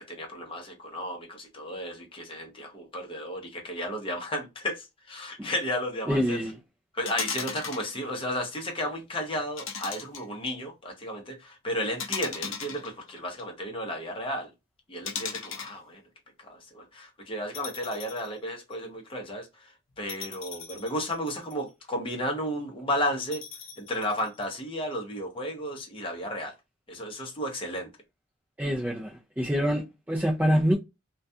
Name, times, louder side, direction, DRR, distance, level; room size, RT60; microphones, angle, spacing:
voice 1, 0.0-6.4 6.9-14.5 14.9-16.0 16.5-19.5 20.0-23.4 23.8-26.5 26.9-27.9, equal, 25° left, 0.7 m, -33 dB
voice 2, 6.1-6.6 28.6-29.8 30.1-30.7, equal, 10° right, 0.3 m, -25 dB
sound 1, 7.0-7.9 9.6-10.5 12.0-13.4 15.0-15.8 17.5-18.3 18.7-18.8 20.1-21.7 23.3-24.4, left 6 dB, 70° left, 0.6 m, -37 dB
2.3 x 2.2 x 2.6 m
head